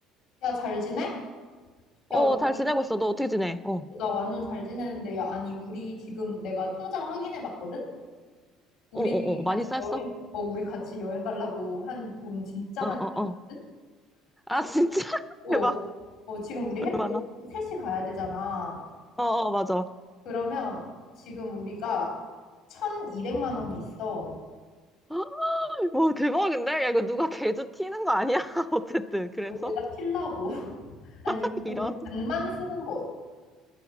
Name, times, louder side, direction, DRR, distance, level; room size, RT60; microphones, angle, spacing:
voice 1, 0.4-1.2 2.1-2.4 3.9-7.8 8.9-13.0 13.5-13.6 15.4-15.7 16.3-17.0 17.4-18.8 20.3-20.9 21.3-22.1 22.7-24.3 29.6-30.7 31.1-33.0, left 3 dB, 70° left, -2 dB, 3.7 m, -32 dB
voice 2, 2.1-3.9 8.9-10.0 12.8-13.4 14.5-15.8 16.9-17.2 19.2-19.9 25.1-29.7 31.3-31.9, equal, ahead, 11 dB, 0.4 m, -27 dB
10.5 x 9.6 x 7.2 m, 1.4 s
cardioid pair, 155°, 0 cm